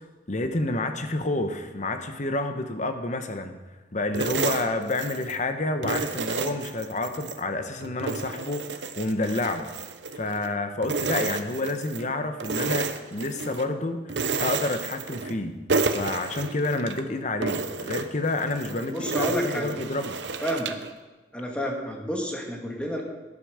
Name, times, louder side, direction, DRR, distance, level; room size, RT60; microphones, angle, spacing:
voice 1, 0.3-3.5 3.9-9.7 10.1-15.6 15.9-20.2, left 2 dB, 45° left, 8 dB, 1.1 m, -29 dB
sound 1, 4.1-5.4 5.8-7.4 7.8-10.5 10.8-12.1 12.4-13.7 14.1-15.4 15.7-17.0 17.4-20.9, right 4 dB, 80° right, 0.9 m, -31 dB
voice 2, 18.9-19.7 20.4-20.7 21.3-23.0, equal, 5° left, 0 dB, 1.8 m, -29 dB
13.0 x 11.0 x 5.0 m, 1.2 s
head